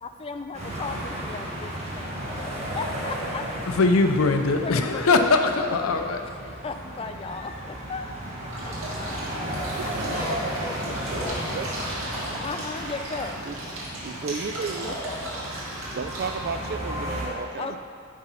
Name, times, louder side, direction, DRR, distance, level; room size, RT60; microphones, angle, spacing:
voice 1, 0.0-3.7 4.6-5.4 6.6-11.6 12.4-13.4 14.8-15.3 17.6-17.8, left 4 dB, 25° left, 7 dB, 0.4 m, -37 dB
sound 1, 0.5-17.2, right 1 dB, 30° right, 1.5 m, -34 dB
voice 2, 3.7-6.2, left 3 dB, 90° left, 6 dB, 0.6 m, -21 dB
sound 2, 8.5-16.3, right 1 dB, 80° right, 1.9 m, -36 dB
voice 3, 11.5-11.9 13.4-13.6 14.0-15.0 15.9-17.8, right 5 dB, 50° right, 9 dB, 0.3 m, -33 dB
8.7 x 4.0 x 5.6 m, 2.2 s
head